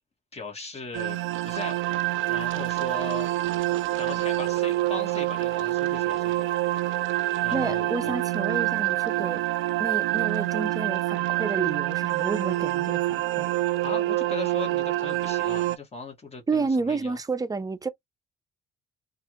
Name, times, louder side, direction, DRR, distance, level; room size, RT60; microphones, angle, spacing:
voice 1, 0.3-1.2 1.4-1.8 2.3-3.3 4.0-6.5 7.4-8.1 13.8-17.2, left 4 dB, 30° left, 1.7 m, -38 dB
sound 1, 0.9-15.8, right 16 dB, 80° right, 0.4 m, -26 dB
voice 2, 7.5-9.4 9.8-13.4 16.5-17.9, right 4 dB, 20° right, 0.5 m, -30 dB
3.3 x 2.6 x 3.0 m
cardioid pair, 90°, 20 cm